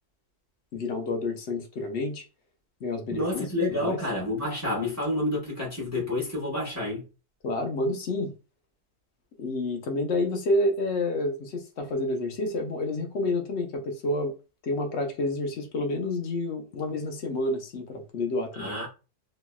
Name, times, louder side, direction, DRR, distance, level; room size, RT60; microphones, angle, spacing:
voice 1, 0.7-2.2 2.8-4.0 7.4-8.3 9.4-14.3 14.6-18.7, left 2 dB, 60° left, 0.7 m, -29 dB
voice 2, 3.1-7.0 18.6-18.9, left 1 dB, 10° right, 1.1 m, -29 dB
3.0 x 2.7 x 2.2 m
omnidirectional pair, 1.6 m